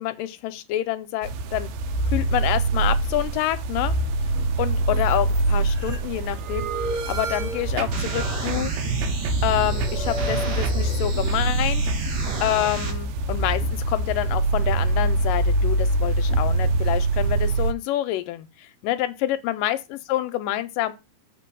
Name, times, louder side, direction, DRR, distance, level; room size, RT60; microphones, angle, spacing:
voice 1, 0.0-1.7 2.1-3.9 4.6-8.7 9.4-11.8 12.4-20.9, left 14 dB, 80° left, 2.1 m, -27 dB
sound 1, 1.2-17.7, right 2 dB, 85° right, 2.7 m, -24 dB
sound 2, 4.7-6.0 6.4-8.4 9.0-9.3 9.6-11.1, right 3 dB, 70° right, 3.5 m, -34 dB
sound 3, 7.9-12.9, right 3 dB, 50° right, 2.7 m, -32 dB
7.7 x 4.7 x 6.0 m
omnidirectional pair, 4.2 m